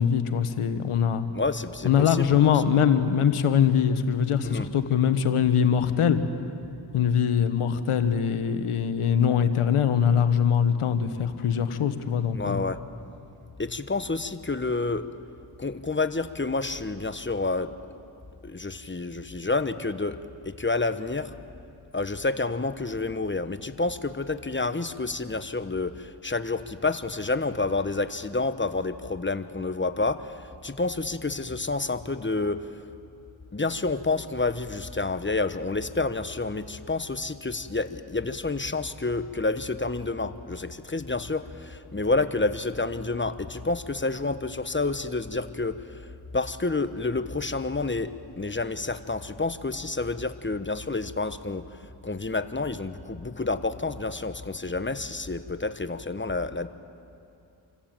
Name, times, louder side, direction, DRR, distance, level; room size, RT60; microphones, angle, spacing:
voice 1, 0.0-1.3 1.8-6.2 6.9-12.6, left 8 dB, 90° left, 10 dB, 1.2 m, -22 dB
voice 2, 1.3-2.5 4.4-4.7 12.3-12.8 13.6-15.1 15.6-17.7 18.4-20.2 20.4-21.3 21.9-32.8 33.5-56.7, left 3 dB, 25° left, 11 dB, 1.2 m, -29 dB
28.0 x 14.5 x 9.0 m, 2.6 s
cardioid pair, 45°, 49 cm